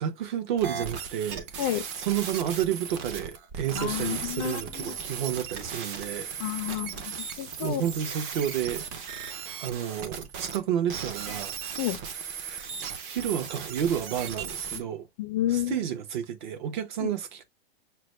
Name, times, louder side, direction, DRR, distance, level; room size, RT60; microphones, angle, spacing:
voice 1, 0.0-6.6 7.6-8.9 9.6-11.9 12.4-12.7 13.1-15.1 15.5-17.4, right 9 dB, 50° right, 0.9 m, -31 dB
sound 1, 0.6-10.6 10.9-14.8, right 7 dB, 30° right, 0.6 m, -37 dB
voice 2, 3.8-4.9 6.4-7.8 11.8-12.0 15.2-15.8, left 13 dB, 30° left, 0.4 m, -30 dB
5.9 x 2.2 x 3.1 m
supercardioid pair, 165°, 30 cm